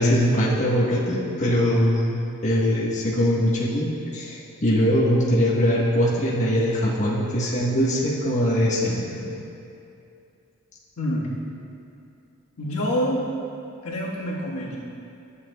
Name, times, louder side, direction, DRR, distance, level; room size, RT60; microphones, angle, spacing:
voice 1, 0.0-9.3, equal, 35° left, -7 dB, 1.2 m, -22 dB
voice 2, 11.0-11.3 12.6-13.2 13.8-14.8, equal, 75° left, -5 dB, 1.5 m, -26 dB
12.0 x 8.3 x 2.3 m, 2.7 s
head